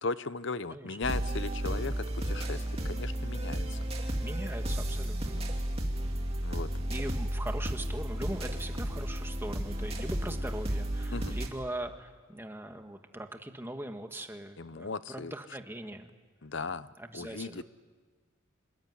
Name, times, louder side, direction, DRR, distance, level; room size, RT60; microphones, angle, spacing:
voice 1, 0.0-3.8 6.4-6.7 11.1-11.4 14.6-15.3 16.4-17.6, left 3 dB, 55° left, 15 dB, 0.7 m, -37 dB
sound 1, 1.0-11.5, right 1 dB, 30° right, 2.8 m, -33 dB
voice 2, 4.2-5.5 6.9-16.1 17.0-17.6, right 1 dB, 10° right, 6 dB, 1.5 m, -41 dB
27.0 x 21.5 x 9.5 m, 1.5 s
head